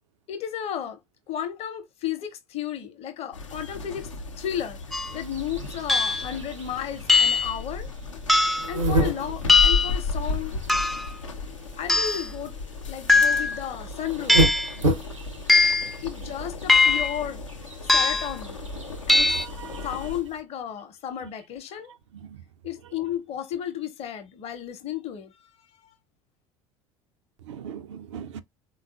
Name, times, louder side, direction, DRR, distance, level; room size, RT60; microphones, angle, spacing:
voice 1, 0.3-1.0 1.3-4.1 4.4-4.8 5.1-7.9 8.7-10.6 11.8-12.5 12.9-14.4 16.0-17.4 17.9-18.6 19.1-19.3 19.8-21.9 22.6-25.3, left 10 dB, 40° left, 0.7 m, -33 dB
sound 1, 3.3-20.2, left 4 dB, 85° left, 0.5 m, -35 dB
sound 2, 4.9-5.2 5.9-6.3 7.1-7.6 8.3-8.7 9.5-10.0 10.7-11.1 11.9-12.3 13.1-13.6 14.3-14.7 15.5-15.9 16.7-17.2 17.9-18.4 19.1-19.5, left 3 dB, ahead, 0.3 m, -20 dB
sound 3, 5.0-20.4, right 1 dB, 90° right, 0.8 m, -32 dB
voice 2, 19.2-20.1 21.9-22.4 22.8-22.9 27.4-28.4, right 8 dB, 75° right, 0.4 m, -41 dB
3.5 x 2.4 x 2.3 m
figure-of-eight pair, 65°, 16 cm